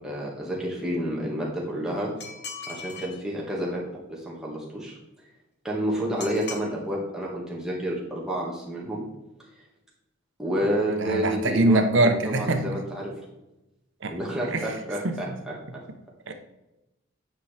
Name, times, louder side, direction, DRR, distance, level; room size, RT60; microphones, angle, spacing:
voice 1, 0.0-2.1 2.7-3.8 4.1-4.9 5.6-9.1 10.4-13.1 14.1-15.3, equal, 5° right, -5 dB, 1.7 m, -29 dB
sound 1, 2.2-3.2 6.2-6.7, left 5 dB, 55° left, 1.0 m, -38 dB
voice 2, 11.0-12.8 14.0-14.2 14.5-14.7 15.0-15.2 16.3-16.4, right 2 dB, 65° right, 7 dB, 0.9 m, -23 dB
9.1 x 5.5 x 3.3 m, 0.97 s
head